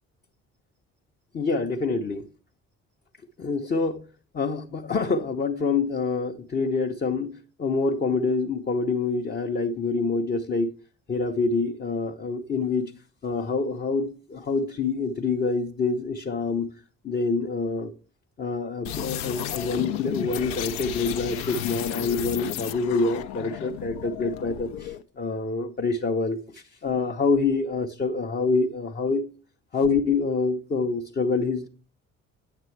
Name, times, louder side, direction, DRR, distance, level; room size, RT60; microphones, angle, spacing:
voice 1, 1.3-2.3 3.4-4.0 4.3-10.7 11.1-12.9 13.2-16.7 17.0-17.9 18.4-29.2 29.7-31.7, left 4 dB, 25° left, 0.7 m, -26 dB
sound 1, 18.8-25.0, left 11 dB, 65° left, 0.6 m, -33 dB
9.0 x 6.7 x 3.2 m
figure-of-eight pair, 45°, 40 cm